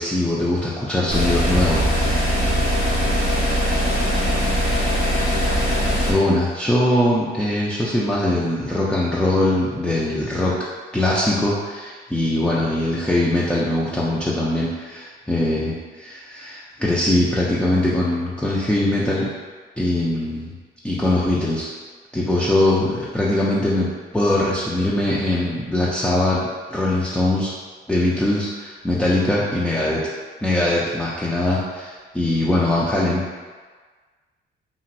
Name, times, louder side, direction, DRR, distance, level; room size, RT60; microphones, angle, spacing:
voice 1, 0.0-1.9 6.0-10.6 10.9-19.3 19.8-20.5 20.8-21.7 22.1-27.5 27.9-30.0 30.4-33.2, left 1 dB, 5° left, -6 dB, 0.4 m, -21 dB
sound 1, 1.1-6.1, equal, 85° left, 1.0 m, -20 dB
3.0 x 2.6 x 2.5 m, 1.5 s
cardioid pair, 90°, 20 cm